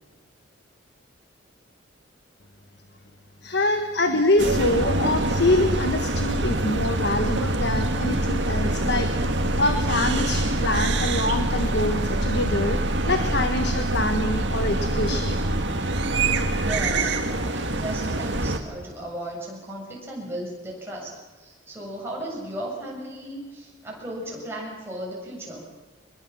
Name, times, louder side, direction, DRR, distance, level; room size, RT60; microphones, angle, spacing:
voice 1, 3.4-12.8 13.0-15.4, left 1 dB, 55° left, 6 dB, 1.6 m, -25 dB
sound 1, 4.4-18.6, right 2 dB, 60° right, 2.1 m, -25 dB
voice 2, 16.5-25.7, right 1 dB, 10° right, -3 dB, 7.7 m, -35 dB
24.5 x 21.5 x 7.4 m, 1.3 s
head